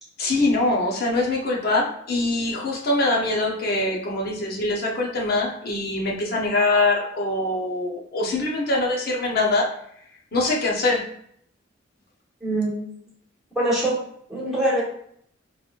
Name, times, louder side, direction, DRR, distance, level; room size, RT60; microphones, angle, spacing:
voice 1, 0.2-9.7 10.3-11.0, left 2 dB, 55° left, -1 dB, 0.8 m, -23 dB
voice 2, 12.4-12.8 13.5-14.0 14.3-14.8, right 1 dB, 5° right, -8 dB, 1.3 m, -23 dB
3.9 x 3.0 x 2.4 m, 0.67 s
head